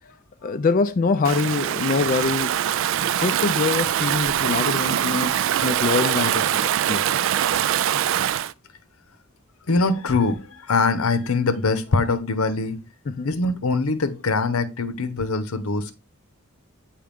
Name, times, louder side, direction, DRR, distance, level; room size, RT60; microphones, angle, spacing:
voice 1, 0.4-2.6 3.0-5.3 5.6-7.1 13.1-13.3, left 4 dB, 40° left, 0.4 m, -24 dB
Stream / Ocean, 1.2-8.5, right 10 dB, 65° right, 0.3 m, -23 dB
voice 2, 9.7-12.8 13.2-16.0, left 3 dB, 90° left, 0.8 m, -23 dB
7.4 x 4.7 x 3.5 m
head